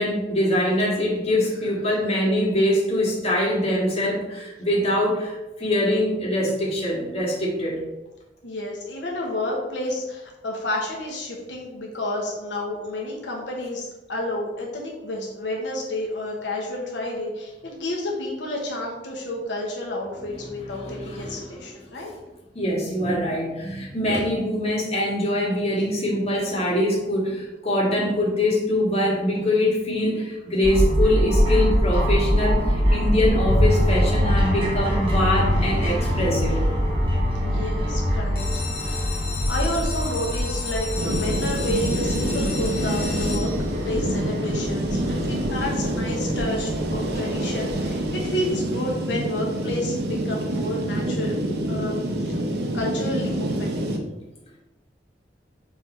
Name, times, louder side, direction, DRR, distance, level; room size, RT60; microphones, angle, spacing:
voice 1, 0.0-7.8 20.8-21.6 22.5-36.7 39.3-39.5, left 1 dB, 35° left, -4 dB, 2.0 m, -23 dB
voice 2, 8.4-22.1 37.3-38.4 38.7-39.2 39.5-43.5 43.8-51.4 51.7-52.4 52.7-53.8, left 1 dB, 90° left, -2 dB, 1.3 m, -30 dB
sound 1, 30.6-48.2, equal, 30° right, 1.6 m, -24 dB
sound 2, 38.4-44.0 44.6-45.1 45.5-45.6 45.8-45.9 46.3-46.5, left 5 dB, 60° left, 1.1 m, -34 dB
sound 3, 41.0-54.0, right 1 dB, 65° right, 0.9 m, -27 dB
6.9 x 3.6 x 4.4 m, 1.0 s
head